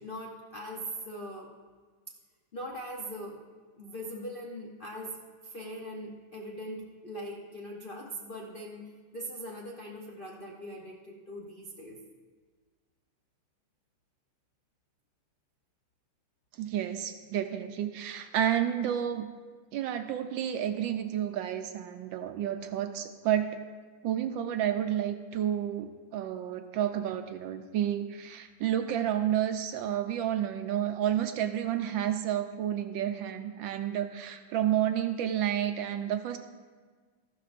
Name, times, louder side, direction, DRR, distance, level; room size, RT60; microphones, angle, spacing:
voice 1, 0.0-1.5 2.5-3.4 3.8-12.0, equal, 60° left, -1 dB, 0.5 m, -41 dB
voice 2, 16.6-19.3 19.7-23.6 24.0-36.4, right 10 dB, 75° right, 7 dB, 1.2 m, -30 dB
14.0 x 12.0 x 2.5 m, 1.5 s
omnidirectional pair, 2.3 m